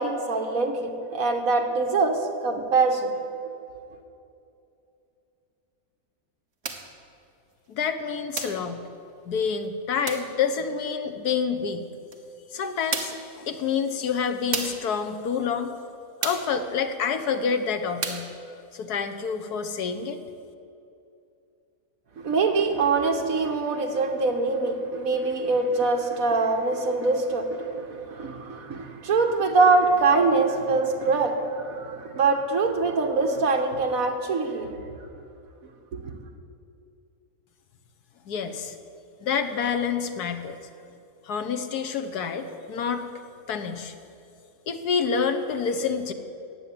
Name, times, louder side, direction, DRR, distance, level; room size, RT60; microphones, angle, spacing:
voice 1, 0.0-3.1 22.2-34.7 35.9-36.1, right 3 dB, 65° right, 3 dB, 1.8 m, -24 dB
sound 1, 6.6-6.9 8.4-8.7 10.1-10.3 12.1-12.2 12.9-13.3 14.5-14.9 16.2-16.6 18.0-18.3, right 5 dB, 50° right, 1.4 m, -32 dB
voice 2, 7.7-8.8 9.2-11.9 12.5-15.7 16.2-18.3 18.7-20.2 38.3-38.7 39.2-40.6 41.2-43.0 43.5-43.9 44.7-46.1, left 6 dB, 90° left, 8 dB, 1.6 m, -28 dB
16.5 x 7.3 x 9.9 m, 2.6 s
omnidirectional pair, 1.6 m